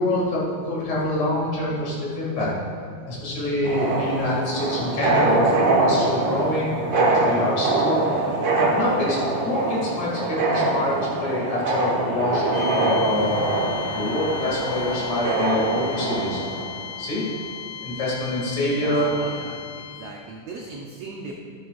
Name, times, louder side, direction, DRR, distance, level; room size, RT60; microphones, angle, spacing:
voice 1, 0.0-2.6 3.1-8.0 8.6-16.4 17.0-17.3 17.8-19.3, left 1 dB, 55° left, -5 dB, 3.3 m, -26 dB
sound 1, 3.6-16.6, right 2 dB, 65° right, 1.5 m, -24 dB
sound 2, 4.1-18.1, right 1 dB, 40° right, 0.7 m, -38 dB
sound 3, 12.5-20.2, left 8 dB, 80° left, 1.9 m, -36 dB
voice 2, 18.8-21.3, right 2 dB, 85° right, -1 dB, 1.4 m, -37 dB
13.5 x 9.1 x 2.5 m, 2.3 s
omnidirectional pair, 3.9 m